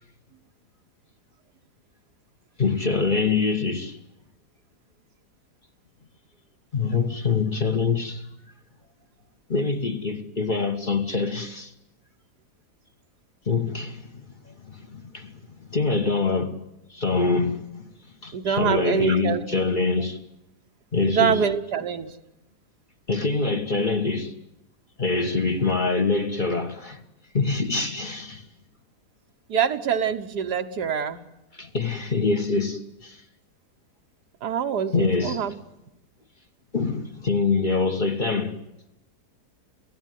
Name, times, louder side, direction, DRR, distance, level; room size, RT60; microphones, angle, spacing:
voice 1, 2.6-4.0 6.7-8.3 9.5-11.7 13.5-15.3 15.6-16.6 16.9-17.9 18.2-20.2 20.9-21.4 23.1-24.3 25.0-27.0 27.3-28.4 31.5-33.2 34.9-35.5 36.7-38.6, left 4 dB, 30° left, 1.4 m, -25 dB
voice 2, 18.3-19.4 21.0-22.1 29.5-31.2 34.4-35.5, right 7 dB, 85° right, 1.7 m, -25 dB
29.0 x 16.0 x 9.3 m
omnidirectional pair, 1.7 m